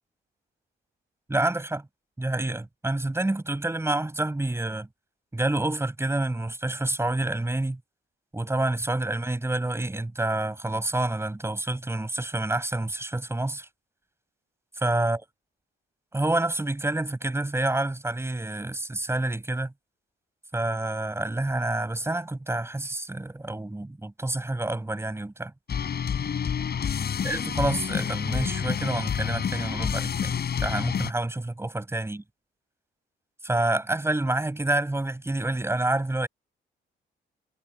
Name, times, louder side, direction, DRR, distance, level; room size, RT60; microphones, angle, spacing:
voice 1, 1.3-1.9 2.2-4.9 5.3-7.8 8.3-13.7 14.8-15.2 16.1-19.7 20.5-25.5 27.2-30.3 30.6-32.2 33.4-36.3, right 2 dB, 15° right, 7.3 m, -28 dB
sound 1, 25.7-31.1, left 7 dB, 55° left, 8.0 m, -28 dB
cardioid pair, 90°, 20 cm